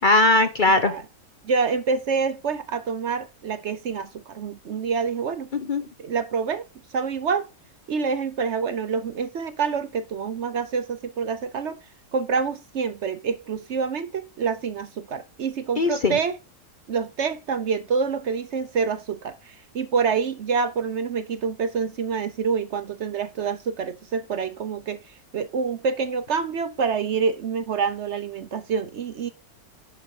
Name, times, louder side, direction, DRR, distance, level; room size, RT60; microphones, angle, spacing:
voice 1, 0.0-0.9 5.5-5.8 15.8-16.2, left 2 dB, 45° left, 0.7 m, -19 dB
voice 2, 1.4-5.5 6.0-7.5 7.9-11.8 12.1-16.4 16.9-29.3, right 5 dB, 55° right, 0.9 m, -27 dB
10.5 x 5.1 x 4.7 m
omnidirectional pair, 1.6 m